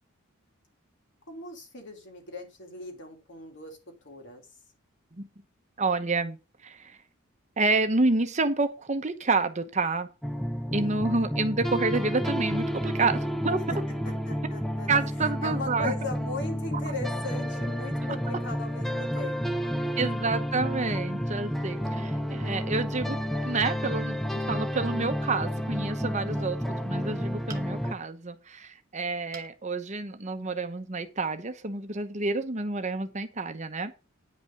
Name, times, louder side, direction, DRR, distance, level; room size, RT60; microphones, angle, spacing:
voice 1, 1.3-3.8 4.0-4.4 10.7-11.1 13.7-13.8 14.0-14.9 15.4-20.4 26.3-26.9, left 2 dB, 60° left, 3.0 m, -39 dB
voice 2, 5.8-7.0 7.6-10.1 10.7-13.6 14.9-15.9 20.0-23.2 23.4-24.2 24.5-33.9, right 3 dB, 35° right, 1.0 m, -29 dB
sound 1, 10.2-27.9, equal, ahead, 0.7 m, -30 dB
sound 2, 27.5-28.0 29.3-29.6 30.1-30.2 30.6-30.7, right 4 dB, 15° right, 1.3 m, -47 dB
9.8 x 5.4 x 5.9 m
head